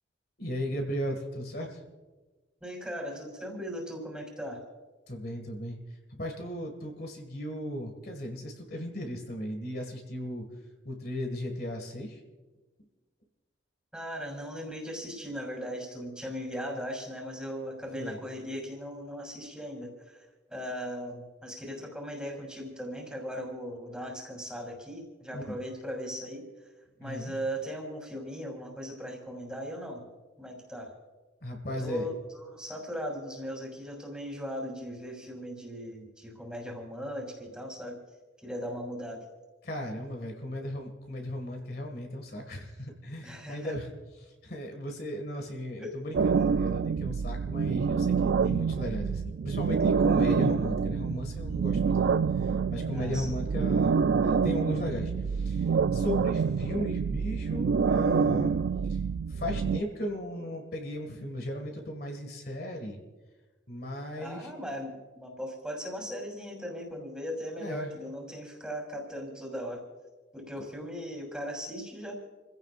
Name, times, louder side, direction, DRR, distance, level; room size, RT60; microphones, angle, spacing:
voice 1, 0.4-1.8 5.1-5.8 6.1-10.4 10.8-12.2 18.0-18.2 25.3-25.6 27.0-27.3 31.4-32.0 39.6-43.9 44.2-53.9 54.2-58.5 59.3-63.0 63.7-64.5 67.6-67.9, left 1 dB, 50° left, 3 dB, 2.0 m, -36 dB
voice 2, 2.6-4.6 13.9-26.4 27.0-30.1 30.4-30.9 31.8-38.0 38.4-39.2 43.2-43.7 45.8-46.0 52.9-53.3 64.2-69.8 70.3-72.1, equal, 5° right, 0 dB, 3.4 m, -38 dB
sound 1, 46.1-59.8, right 5 dB, 75° right, 0.4 m, -27 dB
29.0 x 16.0 x 2.5 m, 1.3 s
head